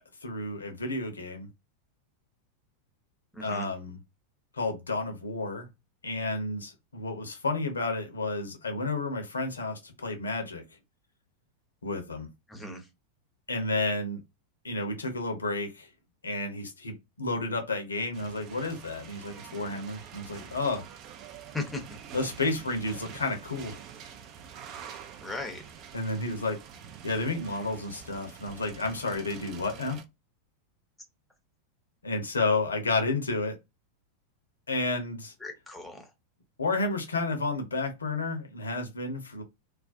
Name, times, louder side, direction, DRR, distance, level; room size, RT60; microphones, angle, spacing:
voice 1, 0.2-1.5 3.4-4.0 4.5-5.7 6.0-10.6 11.8-12.3 13.5-14.2 14.6-15.9 16.2-20.8 22.1-23.8 25.9-26.6 27.0-30.0 32.0-33.6 34.7-35.3 36.6-39.4, left 3 dB, 75° left, 0.6 m, -31 dB
voice 2, 3.3-3.7 12.5-12.8 21.5-21.8 25.2-25.6 35.4-36.0, left 2 dB, 5° left, 0.7 m, -37 dB
sound 1, 18.1-30.0, right 8 dB, 40° right, 0.4 m, -46 dB
2.4 x 2.1 x 2.4 m
figure-of-eight pair, 90°, 0 cm